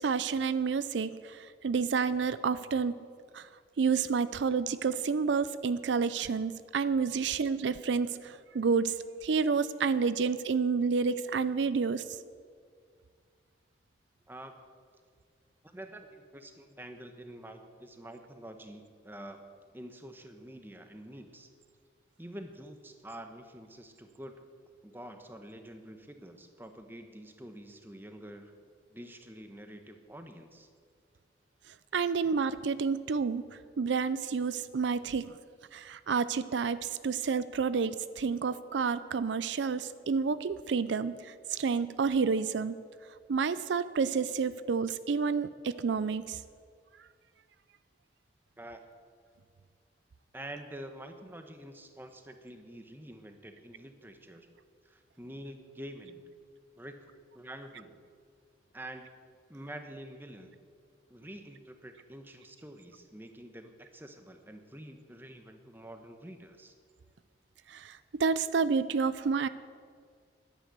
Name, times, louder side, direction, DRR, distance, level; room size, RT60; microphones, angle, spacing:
voice 1, 0.0-3.0 3.3-3.5 3.8-12.2 31.9-35.3 35.7-42.8 43.3-46.4 67.7-69.5, right 5 dB, 80° right, 15 dB, 0.4 m, -29 dB
voice 2, 14.3-14.7 15.6-21.5 22.2-24.4 24.8-28.5 28.9-30.7 48.6-48.9 50.3-54.5 54.8-56.2 56.8-58.0 58.7-59.2 59.5-60.5 61.1-66.7, right 1 dB, 10° right, 6 dB, 1.0 m, -47 dB
11.5 x 10.0 x 8.0 m, 2.1 s
head